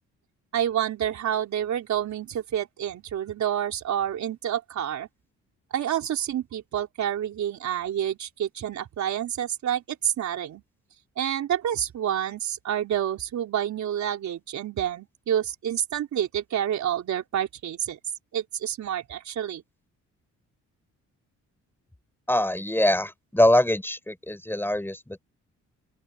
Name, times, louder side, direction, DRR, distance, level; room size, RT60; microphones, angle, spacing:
voice 1, 0.5-5.1 5.7-10.6 11.2-18.0 18.3-19.6, right 10 dB, 70° right, 3.8 m, -28 dB
voice 2, 22.3-25.2, left 1 dB, 5° left, 5.5 m, -23 dB
open air
cardioid pair, 90°, 30 cm